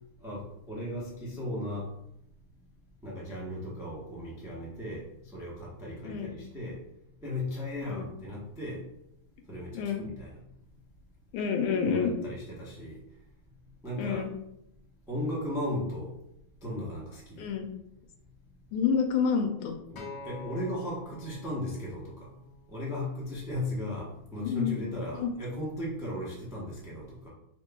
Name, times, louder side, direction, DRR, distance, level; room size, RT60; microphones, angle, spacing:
voice 1, 0.2-1.9 3.0-5.0 5.3-6.8 7.2-8.9 9.5-10.4 11.8-13.0 13.8-14.3 15.1-16.1 16.6-17.5 19.9-22.3 22.7-27.3, left 1 dB, 5° right, -6 dB, 0.3 m, -36 dB
voice 2, 9.7-10.0 11.3-12.1 14.0-14.3 17.4-17.7 18.7-19.7 24.4-25.3, left 6 dB, 85° left, 4 dB, 1.5 m, -29 dB
Acoustic guitar, 20.0-24.2 25.0-25.2, left 3 dB, 60° left, 1.3 m, -48 dB
5.4 x 3.1 x 2.3 m, 0.79 s
omnidirectional pair, 2.3 m